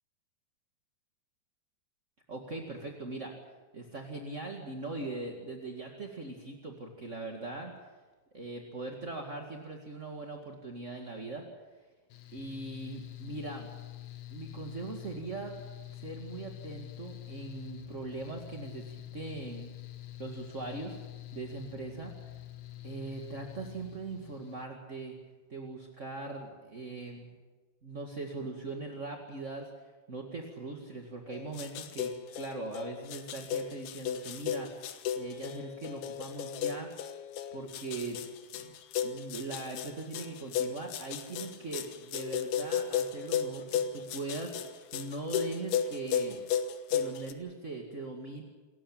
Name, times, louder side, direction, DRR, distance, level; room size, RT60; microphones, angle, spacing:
voice 1, 2.3-3.3 3.7-7.7 8.3-11.4 12.3-13.7 14.3-15.6 15.9-19.7 20.2-21.0 21.3-22.1 22.8-25.2 25.5-27.4 27.8-37.1 37.5-38.2 38.5-38.7 39.0-46.4 46.9-48.4, right 3 dB, 30° right, 2 dB, 1.4 m, -40 dB
Mechanical fan, 12.1-24.7, left 15 dB, 60° left, 2.4 m, -46 dB
sound 1, 31.3-47.3, left 8 dB, 85° left, 3.3 m, -34 dB
28.0 x 15.0 x 8.9 m, 1.3 s
omnidirectional pair, 4.5 m